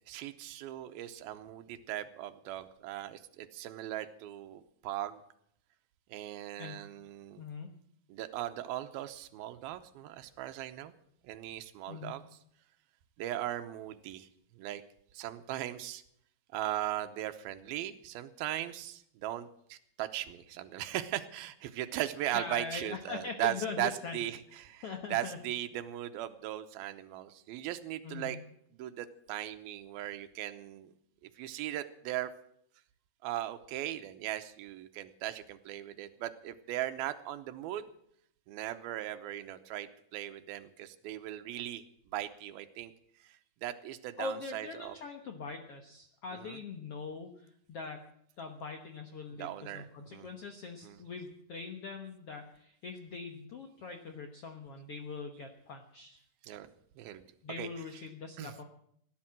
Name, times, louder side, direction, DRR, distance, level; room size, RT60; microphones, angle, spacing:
voice 1, 0.1-5.2 6.1-7.4 8.1-10.9 11.2-12.2 13.2-14.3 14.6-14.8 15.1-16.0 16.5-28.4 28.8-30.9 31.4-32.3 33.2-37.9 38.5-41.8 42.1-42.9 43.2-45.0 46.3-46.6 49.3-50.3 50.8-51.0 56.4-56.7 57.0-58.0 58.4-58.6, right 13 dB, 90° right, 8 dB, 2.7 m, -38 dB
voice 2, 6.6-6.9 7.4-7.8 11.9-12.2 22.3-24.2 24.8-25.4 28.0-28.4 44.2-48.1 48.4-56.2 57.4-58.6, left 4 dB, 60° left, 4 dB, 1.5 m, -42 dB
17.5 x 10.5 x 7.5 m, 0.70 s
omnidirectional pair, 4.2 m